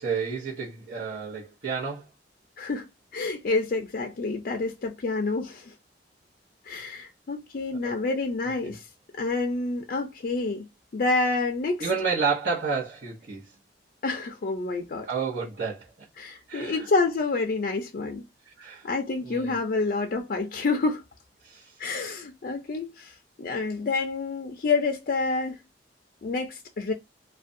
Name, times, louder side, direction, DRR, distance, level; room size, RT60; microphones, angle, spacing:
voice 1, 0.0-2.0 7.8-7.9 11.8-13.4 15.1-15.9 16.5-16.8 18.6-18.8 19.2-19.6 21.4-21.6, right 5 dB, 60° right, 0.9 m, -30 dB
voice 2, 2.6-5.7 6.7-8.8 9.2-10.7 10.9-11.9 14.0-15.1 16.2-18.2 18.8-21.0 21.8-25.6 26.2-26.9, left 3 dB, 50° left, 0.4 m, -28 dB
2.4 x 2.2 x 2.5 m
head